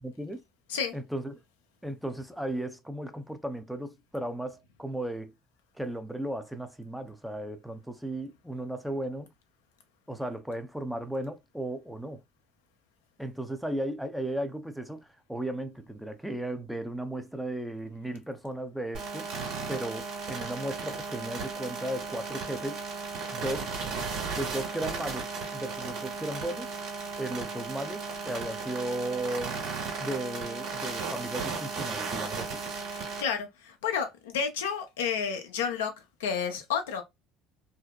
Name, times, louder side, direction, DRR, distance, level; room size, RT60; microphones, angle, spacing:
voice 1, 0.0-0.4 0.9-1.4 1.8-5.3 5.8-9.3 10.1-12.2 13.2-19.4 19.7-22.8 23.3-23.7 24.3-26.7 27.2-29.6 30.0-32.6, right 1 dB, ahead, 0.5 m, -35 dB
sound 1, 18.9-33.2, right 4 dB, 65° right, 1.2 m, -35 dB
voice 2, 32.9-35.9 36.2-37.0, left 7 dB, 85° left, 0.5 m, -31 dB
2.6 x 2.1 x 2.2 m
hypercardioid pair, 65°, 0 cm